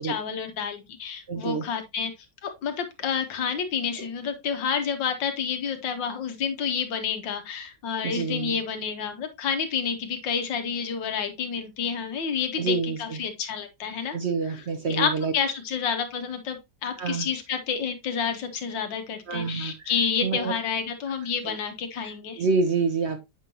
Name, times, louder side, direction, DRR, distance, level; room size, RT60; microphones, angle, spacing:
voice 1, 0.0-2.1 2.4-14.2 14.9-22.4, left 6 dB, 90° left, 7 dB, 1.8 m, -29 dB
voice 2, 1.3-1.7 4.0-4.1 8.0-8.6 12.6-13.2 14.1-15.3 17.0-17.3 19.3-19.9 20.2-20.5 21.4-21.6 22.0-23.2, right 4 dB, 50° right, 7 dB, 0.9 m, -27 dB
7.9 x 5.4 x 2.8 m, 0.22 s
omnidirectional pair, 1.9 m